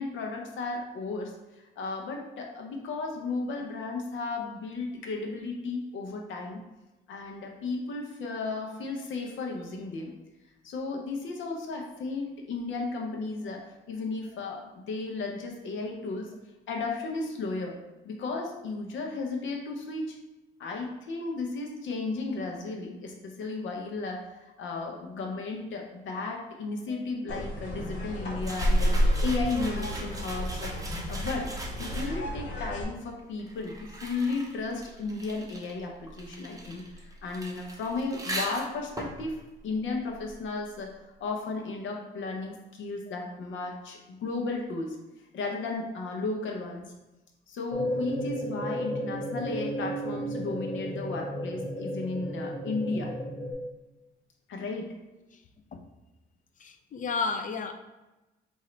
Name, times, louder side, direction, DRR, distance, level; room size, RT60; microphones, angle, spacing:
voice 1, 0.0-1.3 1.8-6.6 7.1-10.1 10.6-16.3 16.7-17.7 18.0-20.2 20.6-31.5 31.8-39.4 39.6-45.0 45.3-46.9 47.5-53.1 54.5-54.9, left 3 dB, 75° left, 1 dB, 0.9 m, -34 dB
sound 1, 27.3-32.8, equal, 60° left, 1.4 m, -29 dB
sound 2, 28.4-32.4 33.2-40.6, right 2 dB, 15° right, 0.7 m, -41 dB
sound 3, 47.7-53.5, equal, 20° left, 0.9 m, -33 dB
voice 2, 56.6-57.7, left 4 dB, 40° left, 7 dB, 0.5 m, -32 dB
4.9 x 2.7 x 3.2 m, 1.0 s
cardioid pair, 90°, 20 cm